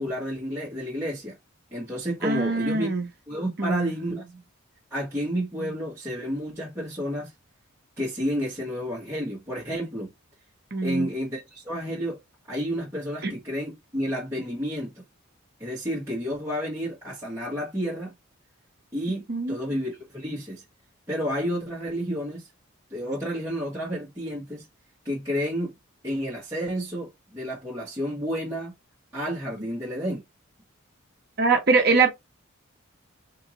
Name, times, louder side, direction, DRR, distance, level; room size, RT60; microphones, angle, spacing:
voice 1, 0.0-1.4 1.7-2.9 3.3-4.2 4.9-7.3 8.0-10.1 10.8-12.2 12.5-15.0 15.6-18.1 18.9-20.6 21.1-22.5 22.9-24.6 25.0-25.7 26.0-28.7 29.1-30.2, equal, 15° right, 1.2 m, -30 dB
voice 2, 2.2-3.0 3.6-3.9 5.6-5.7 10.7-11.1 13.2-13.3 19.3-19.6 31.4-32.1, right 4 dB, 45° right, 0.9 m, -23 dB
3.8 x 2.8 x 2.9 m
head